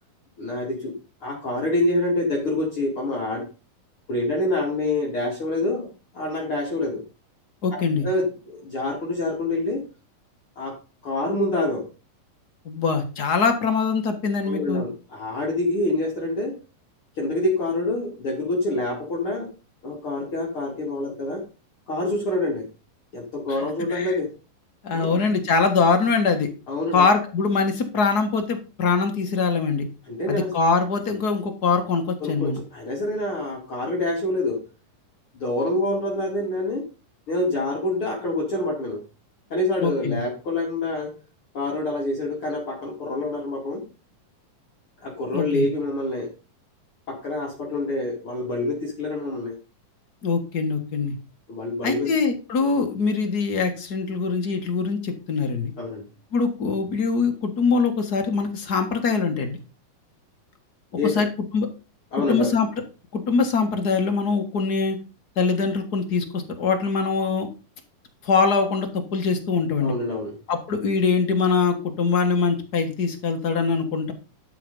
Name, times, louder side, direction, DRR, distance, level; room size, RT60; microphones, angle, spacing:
voice 1, 0.4-3.5 4.1-7.0 7.7-9.8 10.6-10.8 11.0-11.9 14.4-16.6 17.2-19.5 19.8-21.4 21.9-22.7 23.1-24.3 24.9-25.1 26.7-27.1 30.1-30.6 32.2-34.6 35.3-36.9 37.3-39.0 39.5-41.1 41.5-43.8 45.0-46.3 47.1-49.6 51.5-52.1 55.8-56.0 61.0-61.2 62.1-62.5 69.8-70.4, left 2 dB, 40° left, -3 dB, 3.0 m, -26 dB
voice 2, 7.6-8.1 12.6-14.8 23.5-23.6 23.9-24.2 24.8-26.5 26.9-29.9 30.3-32.6 39.8-40.2 45.3-45.7 50.2-51.1 51.8-55.7 56.3-59.6 61.1-61.3 61.5-61.7 62.3-62.7 63.1-65.0 65.4-67.5 68.2-69.9 70.5-74.1, left 4 dB, 55° left, 5 dB, 1.0 m, -23 dB
12.5 x 4.9 x 5.4 m, 0.31 s
omnidirectional pair, 4.1 m